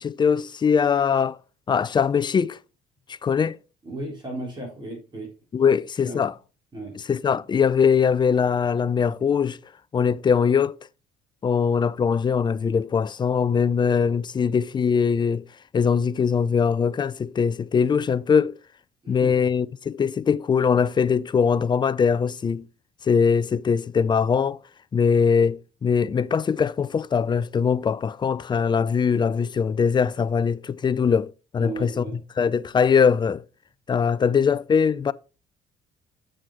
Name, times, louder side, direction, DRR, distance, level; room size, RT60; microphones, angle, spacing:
voice 1, 0.0-1.4 1.7-2.6 3.1-3.6 5.5-6.3 7.1-9.6 9.9-10.8 11.4-15.4 15.7-18.6 19.1-22.6 23.0-24.6 24.9-31.3 31.5-32.0 32.4-33.4 33.9-35.1, left 6 dB, 25° left, 0.4 m, -21 dB
voice 2, 3.8-5.3 6.0-6.2 6.7-6.9 19.0-19.5 31.6-32.2, right 2 dB, 25° right, 3.9 m, -35 dB
7.7 x 7.4 x 3.2 m
cardioid pair, 110°, 17 cm